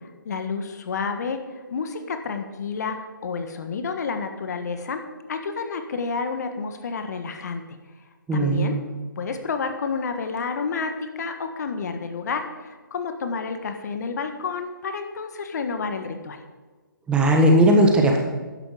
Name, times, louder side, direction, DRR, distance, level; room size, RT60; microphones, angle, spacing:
voice 1, 0.0-5.0 5.3-7.6 8.3-8.8 9.2-16.4, left 5 dB, 50° left, 7 dB, 1.5 m, -30 dB
voice 2, 8.3-8.8 17.1-18.2, right 1 dB, 10° right, 1 dB, 1.5 m, -17 dB
13.0 x 11.0 x 5.0 m, 1.3 s
figure-of-eight pair, 145°, 11 cm